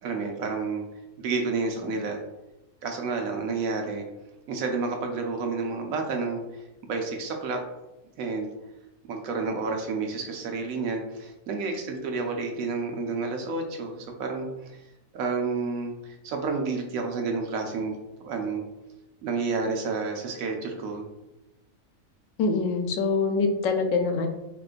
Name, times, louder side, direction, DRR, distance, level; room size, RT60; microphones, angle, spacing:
voice 1, 0.0-0.8 1.2-2.2 2.8-4.0 4.5-6.4 6.9-7.6 8.2-8.5 9.1-14.8 15.1-18.0 18.2-18.6 19.2-21.1, right 4 dB, 90° right, 3 dB, 1.1 m, -30 dB
voice 2, 22.4-24.3, left 4 dB, 75° left, 5 dB, 0.9 m, -24 dB
3.7 x 3.7 x 2.4 m, 0.98 s
omnidirectional pair, 1.4 m